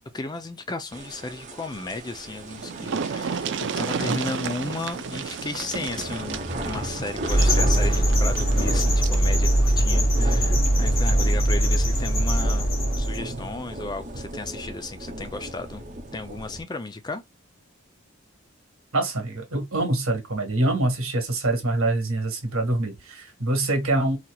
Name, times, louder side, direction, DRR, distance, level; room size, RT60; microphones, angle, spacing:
voice 1, 0.1-12.7 13.0-15.8 16.1-17.2, left 2 dB, 20° left, 0.4 m, -34 dB
sound 1, 0.9-16.6, right 1 dB, 35° right, 0.8 m, -36 dB
sound 2, 2.1-2.2 2.4-9.2 10.5-10.7 11.1-11.2, right 6 dB, 55° right, 0.4 m, -32 dB
sound 3, 7.3-13.2, right 1 dB, 40° left, 1.5 m, -21 dB
voice 2, 18.9-24.2, right 2 dB, 80° right, 1.5 m, -25 dB
4.0 x 2.8 x 2.3 m
head